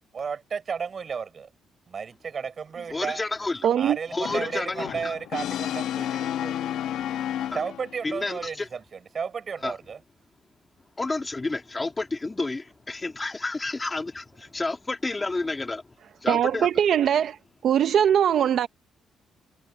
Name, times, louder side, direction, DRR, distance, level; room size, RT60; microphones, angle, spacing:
voice 1, 0.1-1.5 1.9-3.2 3.8-6.7 7.5-10.0, right 6 dB, 40° right, 4.2 m, -33 dB
voice 2, 2.9-3.7 4.1-5.1 7.4-7.6 8.0-8.7 9.6-9.7 11.0-15.8 16.2-16.7, left 3 dB, 20° left, 2.4 m, -30 dB
voice 3, 3.6-4.0 16.3-17.4 17.6-18.7, right 9 dB, 60° right, 0.7 m, -21 dB
Brass instrument, 4.2-8.1, left 11 dB, 85° left, 1.2 m, -31 dB
cardioid pair, 125°, 0 cm